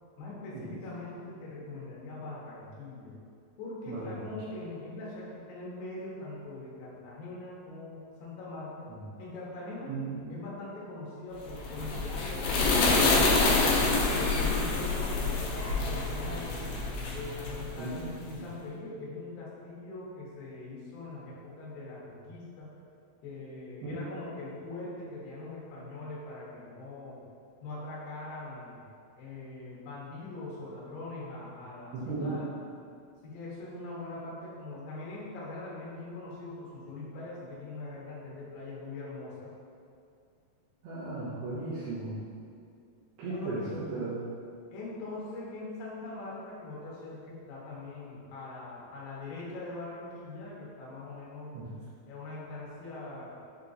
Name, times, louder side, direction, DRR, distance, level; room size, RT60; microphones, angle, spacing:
voice 1, 0.2-3.1 3.6-8.9 9.2-9.9 10.3-13.7 14.1-16.7 17.1-22.7 23.2-27.2 27.6-28.8 29.2-32.4 33.2-39.5 43.2-43.7 43.9-44.1 44.7-51.6 52.1-53.3, left 2 dB, 70° left, -7 dB, 2.4 m, -42 dB
voice 2, 3.9-4.3 8.9-9.0 9.9-10.3 17.8-18.4 23.8-24.0 31.9-32.3 40.8-42.2 43.2-44.2 51.5-51.7, right 3 dB, 75° right, -13 dB, 2.7 m, -36 dB
sound 1, 11.5-18.1, left 3 dB, 90° left, 2.2 m, -27 dB
6.9 x 2.9 x 2.5 m, 2.4 s
omnidirectional pair, 5.0 m